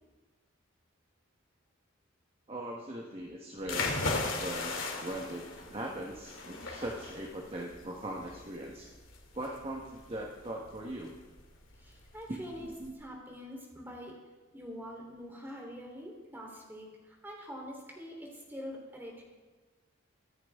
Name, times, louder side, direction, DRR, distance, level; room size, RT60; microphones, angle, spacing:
voice 1, 2.5-4.0 4.4-8.9 9.3-11.1 12.3-13.0, right 1 dB, 30° right, -1 dB, 1.3 m, -40 dB
sound 1, 3.6-12.9, left 3 dB, 70° left, 2.7 m, -38 dB
voice 2, 11.8-12.7 13.0-14.2 14.5-19.2, equal, 10° right, -1 dB, 3.5 m, -45 dB
25.0 x 10.0 x 3.6 m, 1.3 s
head